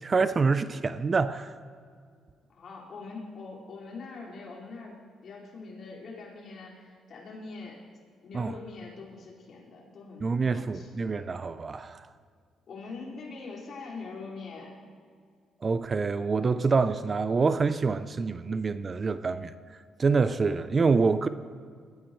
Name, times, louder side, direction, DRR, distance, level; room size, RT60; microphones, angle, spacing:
voice 1, 0.0-1.5 8.3-8.5 10.2-12.1 15.6-19.5 20.0-21.3, right 4 dB, 35° right, 0.5 m, -26 dB
voice 2, 2.5-7.8 8.2-10.9 12.7-14.8, left 4 dB, 55° left, 4.9 m, -43 dB
21.5 x 14.5 x 3.2 m
cardioid pair, 90°, 0 cm